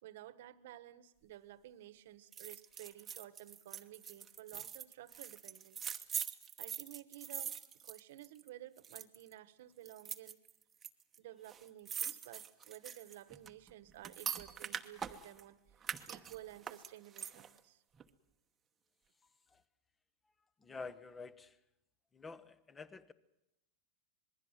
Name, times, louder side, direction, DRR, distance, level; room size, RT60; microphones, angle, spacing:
voice 1, 0.0-5.9 6.6-10.4 11.2-15.6 16.1-17.8, right 14 dB, 70° right, 15 dB, 1.3 m, -53 dB
sound 1, 2.3-8.5 8.8-9.3 9.9-10.9 11.1-11.2 11.4-15.4 15.8-17.6 18.0-18.1, right 8 dB, 20° right, 1.0 m, -43 dB
voice 2, 20.6-21.6 22.1-23.1, left 4 dB, 10° left, 17 dB, 0.9 m, -49 dB
26.0 x 21.0 x 7.6 m, 0.86 s
supercardioid pair, 150°, 0 cm